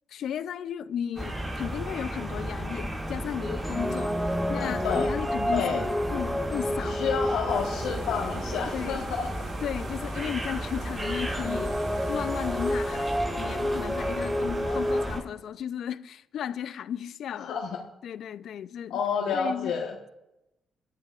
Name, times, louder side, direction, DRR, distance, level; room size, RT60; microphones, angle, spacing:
voice 1, 0.1-4.2 4.5-7.1 8.7-9.1 9.6-11.8 12.1-17.5 18.0-19.0 19.3-19.7, left 9 dB, 70° left, 0.5 m, -35 dB
sound 1, 1.1-15.2, right 1 dB, 20° right, 5.0 m, -34 dB
sound 2, 3.4-8.5 11.0-15.1, equal, ahead, 1.6 m, -30 dB
voice 2, 4.5-5.1 5.5-5.8 6.8-9.3 14.6-14.8 17.3-17.8 18.9-19.9, left 6 dB, 85° left, 1.2 m, -30 dB
sound 3, 7.5-13.2, right 4 dB, 80° right, 4.4 m, -50 dB
22.0 x 12.0 x 2.4 m
cardioid pair, 90°, 0 cm